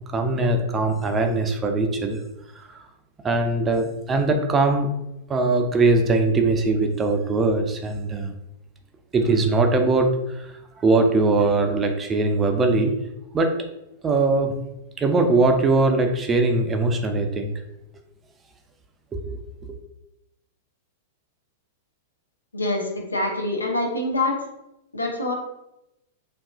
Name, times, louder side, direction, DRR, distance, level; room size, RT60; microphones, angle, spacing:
voice 1, 0.1-2.2 2.6-2.7 3.2-4.9 5.3-8.3 9.1-12.9 13.3-13.5 14.0-14.5 15.0-17.5 19.1-19.4, right 3 dB, 20° right, 5 dB, 0.4 m, -21 dB
voice 2, 22.5-24.4 24.9-25.3, left 2 dB, 85° left, 0 dB, 0.6 m, -25 dB
3.5 x 2.3 x 2.3 m, 0.88 s
figure-of-eight pair, 100°, 0 cm